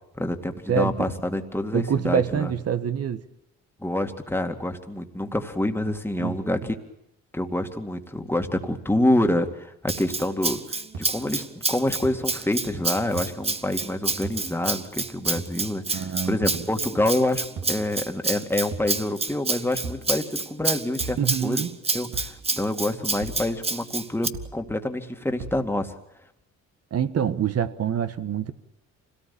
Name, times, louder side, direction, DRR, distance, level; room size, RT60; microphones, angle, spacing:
voice 1, 0.2-2.5 3.8-6.7 7.3-10.6 10.9-21.2 21.4-21.6 21.9-25.9, left 1 dB, 5° left, 5 dB, 2.2 m, -27 dB
voice 2, 0.7-1.1 1.7-3.2 6.2-6.5 15.9-16.7 21.2-21.8 26.9-28.5, right 8 dB, 55° right, 11 dB, 1.4 m, -26 dB
Rattle (instrument), 9.9-24.3, right 3 dB, 20° right, 1.1 m, -29 dB
sound 1, 9.9-10.0 10.9-11.0 12.0-12.1 13.2-13.3 14.2-14.4 15.4-15.6 16.4-16.6 17.6-17.8 18.7-18.9 19.8-20.1 21.0-21.2 22.1-22.4 23.2-23.4 24.3-24.6 25.4-25.6, right 4 dB, 80° right, 4.0 m, -35 dB
25.5 x 18.0 x 8.5 m, 0.84 s
cardioid pair, 90°, 30 cm